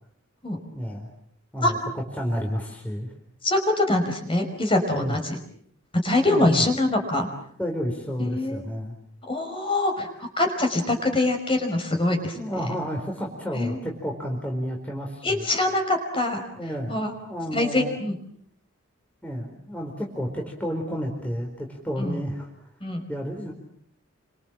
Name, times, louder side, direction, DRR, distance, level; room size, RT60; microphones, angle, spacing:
voice 1, 0.7-1.1 1.5-3.1 4.9-5.2 6.3-6.7 7.6-8.9 12.3-15.5 16.5-18.0 19.2-22.5 23.1-23.5, equal, 5° left, 0 dB, 4.4 m, -31 dB
voice 2, 3.4-5.4 6.0-7.3 8.2-8.6 9.2-12.4 13.5-13.8 15.2-16.4 16.9-17.1 17.5-18.1 22.0-22.1 22.8-23.0, left 2 dB, 25° left, 5 dB, 5.4 m, -24 dB
30.0 x 25.5 x 7.5 m, 0.67 s
head